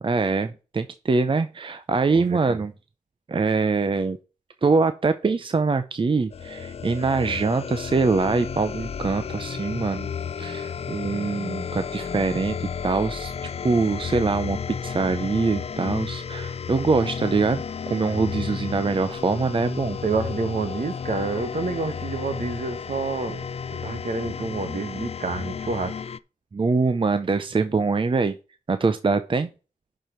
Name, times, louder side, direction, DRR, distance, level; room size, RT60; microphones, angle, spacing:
voice 1, 0.0-2.7 3.3-4.2 4.6-10.1 10.4-13.3 13.6-20.0 26.5-28.4 28.7-29.5, right 4 dB, 40° right, 0.6 m, -24 dB
voice 2, 2.1-2.6 20.0-23.4 23.8-26.0, right 4 dB, 65° right, 1.5 m, -28 dB
sound 1, 6.3-26.2, left 6 dB, 45° left, 0.4 m, -33 dB
11.0 x 4.7 x 4.4 m
wide cardioid pair, 75°, 14 cm